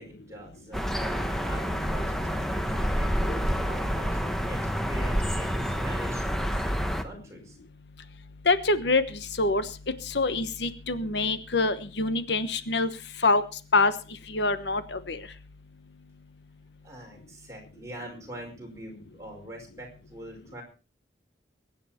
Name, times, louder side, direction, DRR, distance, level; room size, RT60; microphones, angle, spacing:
voice 1, 0.0-4.6 4.8-7.6 16.8-20.6, equal, 15° right, 0 dB, 5.2 m, -44 dB
sound 1, 0.7-7.0, equal, ahead, 1.2 m, -28 dB
voice 2, 8.4-9.7 10.0-12.9 13.2-13.4 13.7-13.9 14.3-15.2, left 3 dB, 70° left, 12 dB, 1.2 m, -25 dB
22.5 x 9.6 x 4.4 m, 0.35 s
head